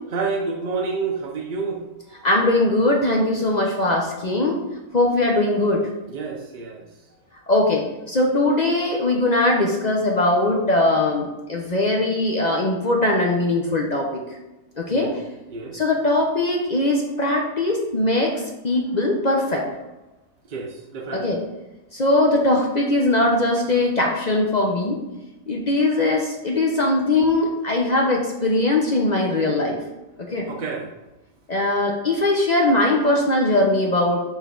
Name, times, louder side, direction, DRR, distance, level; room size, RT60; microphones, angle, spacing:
voice 1, 0.1-1.8 6.1-6.8 14.9-15.1 15.5-15.8 20.5-21.3 27.2-27.3 30.5-30.9, right 4 dB, 55° right, 0 dB, 0.5 m, -29 dB
voice 2, 2.2-4.6 4.9-5.9 7.5-14.2 14.8-15.1 15.7-19.7 21.1-21.4 21.9-25.0 25.5-29.8 30.2-30.5 31.5-34.2, left 2 dB, 45° left, 0 dB, 0.5 m, -20 dB
5.7 x 4.5 x 3.7 m, 1.0 s
omnidirectional pair, 1.6 m